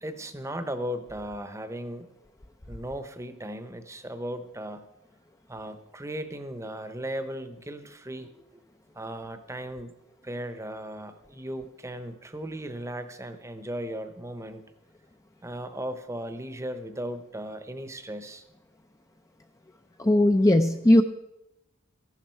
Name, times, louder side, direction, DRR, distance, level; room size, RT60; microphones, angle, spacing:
voice 1, 0.0-2.1 2.7-4.9 5.5-8.6 8.9-9.9 10.2-14.6 15.4-18.4, right 1 dB, 15° right, 9 dB, 0.8 m, -37 dB
voice 2, 20.0-21.0, left 1 dB, 15° left, 5 dB, 0.4 m, -18 dB
15.0 x 11.5 x 4.5 m, 0.90 s
head